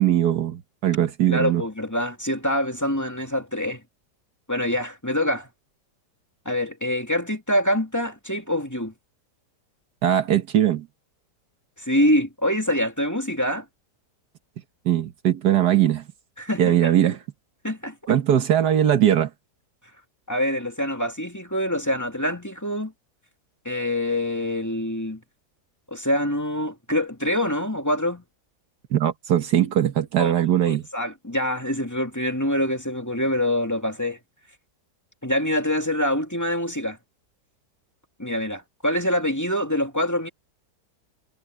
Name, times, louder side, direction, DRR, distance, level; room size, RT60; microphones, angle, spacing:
voice 1, 0.0-1.6 10.0-10.9 14.9-16.0 16.6-17.2 18.1-19.3 28.9-30.8, right 11 dB, 70° right, 1.7 m, -20 dB
voice 2, 1.2-3.8 4.5-5.5 6.5-8.9 11.8-13.6 16.4-16.9 17.6-18.0 20.3-22.9 23.6-25.2 25.9-28.2 30.2-30.3 30.6-34.2 35.2-37.0 38.2-40.3, left 1 dB, 10° left, 2.3 m, -25 dB
omnidirectional pair, 1.8 m